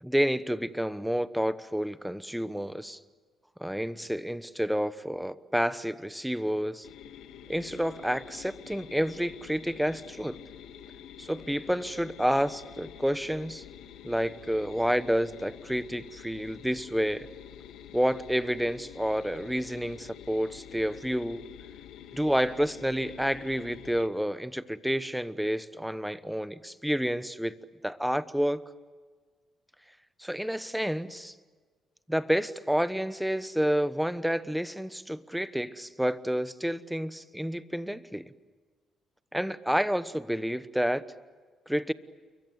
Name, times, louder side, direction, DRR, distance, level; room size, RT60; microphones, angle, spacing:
voice 1, 0.0-3.0 3.6-6.9 7.5-10.4 11.2-13.6 14.0-17.3 17.9-21.4 22.1-27.6 27.8-28.6 30.2-31.3 32.1-38.3 39.3-41.0 41.7-41.9, equal, ahead, 14 dB, 1.1 m, -29 dB
sound 1, 6.8-24.1, left 10 dB, 85° left, 1.8 m, -48 dB
29.5 x 23.5 x 8.2 m, 1.5 s
cardioid pair, 90°, 0 cm